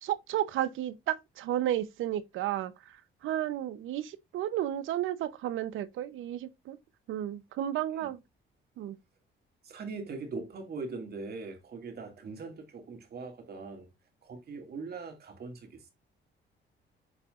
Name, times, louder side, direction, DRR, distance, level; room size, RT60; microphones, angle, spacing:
voice 1, 0.0-3.0 3.2-6.8 7.1-8.2 8.8-9.0, right 12 dB, 90° right, 0.8 m, -32 dB
voice 2, 9.6-13.9 14.2-15.9, right 4 dB, 50° right, 2.2 m, -41 dB
8.5 x 5.0 x 2.5 m
cardioid pair, 120°, 20 cm